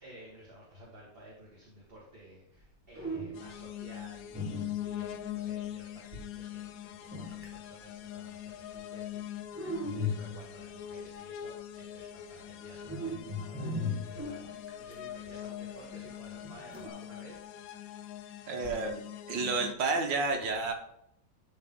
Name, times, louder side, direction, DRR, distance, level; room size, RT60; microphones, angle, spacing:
voice 1, 0.0-17.8, right 1 dB, 30° right, -5 dB, 2.1 m, -53 dB
sound 1, 2.6-2.7 2.9-3.6 4.3-5.2 7.1-7.6 9.5-10.6 12.8-14.9 16.4-16.9, left 2 dB, 5° right, 1.6 m, -37 dB
sound 2, 3.3-19.7, left 11 dB, 75° left, 0.8 m, -42 dB
voice 2, 18.5-19.0 19.3-20.7, right 3 dB, 75° right, 4 dB, 1.9 m, -30 dB
12.0 x 4.3 x 3.8 m, 0.77 s
omnidirectional pair, 2.0 m